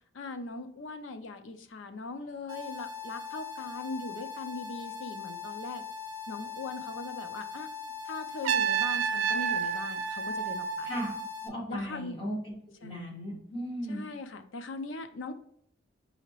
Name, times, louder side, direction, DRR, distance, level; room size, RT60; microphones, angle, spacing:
voice 1, 0.1-5.8 6.3-7.7 8.0-10.9 11.7-12.2 12.8-13.1 13.9-15.3, left 3 dB, 75° left, 9 dB, 0.5 m, -40 dB
sound 1, 2.5-11.5, left 6 dB, 20° right, 0.4 m, -41 dB
Trumpet, 8.4-11.4, right 8 dB, 85° right, 0.3 m, -30 dB
voice 2, 11.4-12.5 12.8-14.0, equal, 25° left, -4 dB, 1.6 m, -36 dB
5.7 x 2.8 x 3.0 m, 0.69 s
head